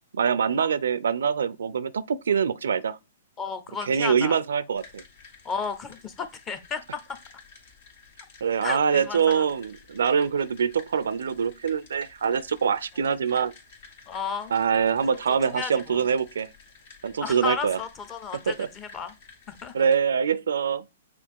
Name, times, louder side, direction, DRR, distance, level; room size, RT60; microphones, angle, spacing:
voice 1, 0.1-3.0 3.9-5.0 8.4-13.5 14.5-16.5 17.0-17.8 18.5-18.7 19.7-20.9, right 7 dB, 80° right, 0.4 m, -24 dB
voice 2, 3.4-4.4 5.4-7.2 8.6-9.4 14.1-14.5 15.5-16.0 17.2-19.1 19.5-19.7, left 5 dB, 20° left, 0.7 m, -33 dB
sound 1, 4.7-19.9, left 5 dB, 60° left, 1.9 m, -52 dB
6.0 x 2.4 x 3.5 m
hypercardioid pair, 140°, 0 cm